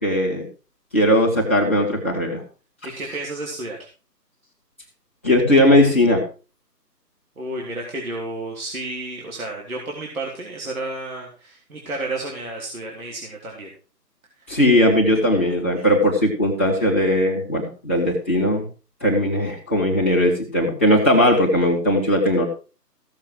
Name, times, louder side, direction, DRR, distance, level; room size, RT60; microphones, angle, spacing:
voice 1, 0.0-0.5 0.9-2.4 5.2-6.2 14.5-18.6 19.0-22.5, left 1 dB, 10° left, -8 dB, 1.1 m, -18 dB
voice 2, 2.8-3.8 7.4-13.7 14.5-14.6 15.8-15.9, right 2 dB, 55° right, -1 dB, 3.5 m, -31 dB
15.5 x 7.4 x 4.8 m, 0.35 s
figure-of-eight pair, 170°, 49 cm